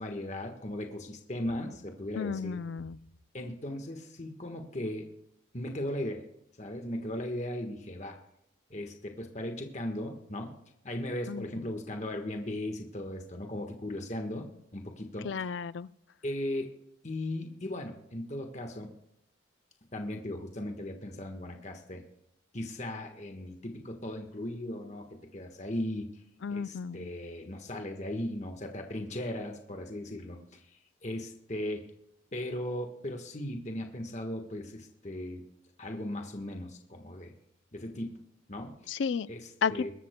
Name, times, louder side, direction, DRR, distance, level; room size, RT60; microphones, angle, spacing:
voice 1, 0.0-2.6 3.3-5.1 5.5-6.2 6.6-8.2 8.7-10.6 10.8-15.5 16.2-16.7 17.0-18.9 19.9-22.0 22.5-26.2 26.5-31.9 32.3-35.4 35.8-37.3 37.7-38.2 38.5-38.8 39.3-39.9, left 1 dB, 35° left, 4 dB, 1.3 m, -37 dB
voice 2, 2.2-3.0 11.3-11.5 15.2-15.9 26.4-27.1 38.9-39.3 39.6-39.9, left 6 dB, 65° left, 17 dB, 0.4 m, -32 dB
22.0 x 13.0 x 2.2 m, 0.79 s
head